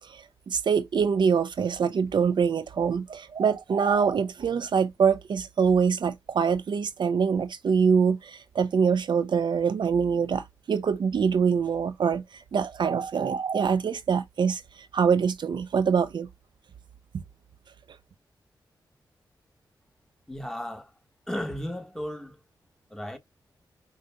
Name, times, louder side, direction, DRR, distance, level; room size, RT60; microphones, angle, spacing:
voice 1, 0.1-12.2 12.5-14.6 14.9-16.3, right 6 dB, 65° right, 0.5 m, -24 dB
voice 2, 20.3-20.9 21.3-22.4 22.9-23.2, equal, 5° left, 1.1 m, -34 dB
5.1 x 2.7 x 2.2 m
cardioid pair, 55°, 8 cm